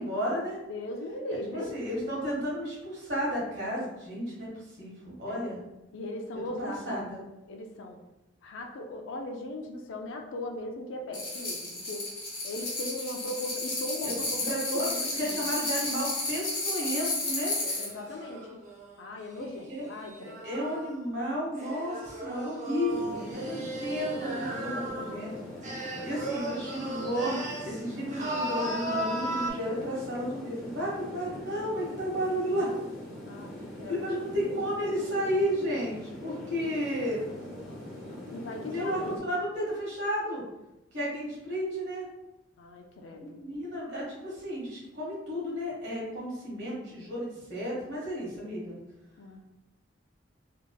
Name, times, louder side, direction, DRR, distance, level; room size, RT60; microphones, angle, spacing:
voice 1, 0.0-0.6 1.5-4.5 4.8-5.6 6.6-7.2 14.0-14.1 14.4-14.9 15.2-17.5 19.7-19.9 20.4-25.3 26.0-27.3 27.6-32.7 33.9-37.2 38.7-40.4 40.9-42.0 43.2-48.8, equal, 65° right, -5 dB, 1.3 m, -32 dB
voice 2, 0.7-1.7 5.3-5.5 5.9-7.1 7.5-8.0 8.4-12.1 12.4-15.4 17.8-18.6 19.0-20.4 33.3-34.0 34.3-34.6 38.3-39.2 42.6-43.4 49.2-49.4, left 1 dB, 90° left, 2 dB, 0.4 m, -39 dB
sound 1, 11.1-17.9, left 2 dB, 25° left, 1.2 m, -32 dB
sound 2, 17.6-20.9 21.5-25.2 25.6-27.8 28.1-29.5, right 1 dB, 40° right, 0.5 m, -36 dB
sound 3, 22.9-39.2, left 1 dB, ahead, 1.0 m, -42 dB
3.4 x 2.8 x 2.2 m, 0.96 s
head